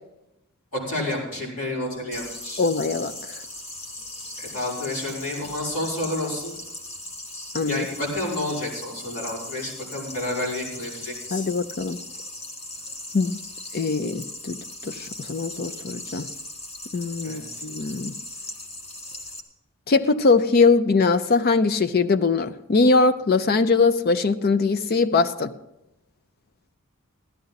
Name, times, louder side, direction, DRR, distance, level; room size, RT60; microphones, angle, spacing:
voice 1, 0.7-2.6 4.4-6.5 7.7-11.5 17.2-17.6, left 1 dB, 75° left, -5 dB, 5.3 m, -30 dB
sound 1, 2.1-19.4, left 1 dB, 30° left, 1.3 m, -38 dB
voice 2, 2.6-3.1 7.5-7.8 11.3-12.0 13.1-13.4 13.7-14.6 14.8-16.3 16.9-18.1 19.9-25.5, left 4 dB, 45° left, 12 dB, 0.5 m, -21 dB
16.0 x 12.5 x 4.0 m, 0.91 s
head